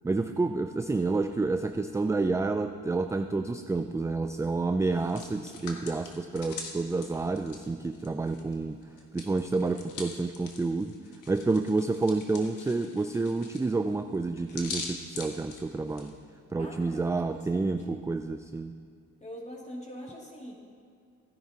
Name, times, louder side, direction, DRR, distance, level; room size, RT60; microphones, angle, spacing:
voice 1, 0.0-8.8 9.1-10.9 11.3-16.1 16.5-18.7, right 3 dB, 10° right, 7 dB, 0.3 m, -29 dB
Hands, 4.8-8.5 8.8-16.1, left 4 dB, 80° left, 1.5 m, -43 dB
voice 2, 16.6-17.8 19.2-20.5, equal, 20° left, -2 dB, 2.6 m, -43 dB
16.5 x 10.5 x 2.9 m, 2.3 s
cardioid pair, 90°, 30 cm